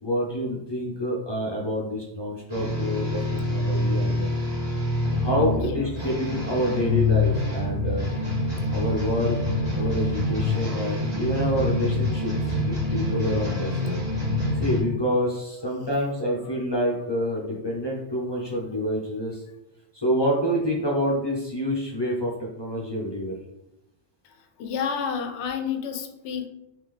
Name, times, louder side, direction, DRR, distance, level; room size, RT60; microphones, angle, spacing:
voice 1, 0.0-4.3 5.2-8.1 8.7-9.4 9.7-12.3 12.6-13.7 14.5-19.4 20.0-23.3, equal, 25° left, -4 dB, 0.7 m, -27 dB
sound 1, 2.5-14.8, left 2 dB, 40° right, 1.4 m, -26 dB
voice 2, 24.6-26.5, left 7 dB, 80° left, 6 dB, 0.8 m, -30 dB
3.4 x 3.2 x 3.5 m, 0.88 s
omnidirectional pair, 1.1 m